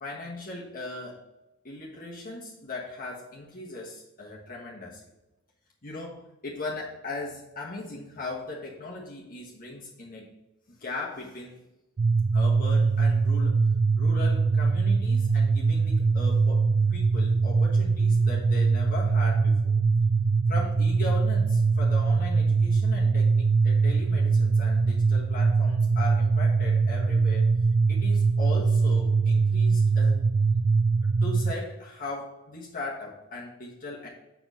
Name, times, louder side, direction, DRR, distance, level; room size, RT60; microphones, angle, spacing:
voice 1, 0.0-1.2 1.6-5.0 5.8-10.4 10.7-11.6 12.3-19.7 20.5-27.5 27.9-30.2 31.2-34.1, left 2 dB, 45° left, -3 dB, 1.5 m, -38 dB
sound 1, 12.0-31.5, right 4 dB, 35° right, 0.3 m, -22 dB
7.0 x 5.9 x 4.1 m, 0.98 s
head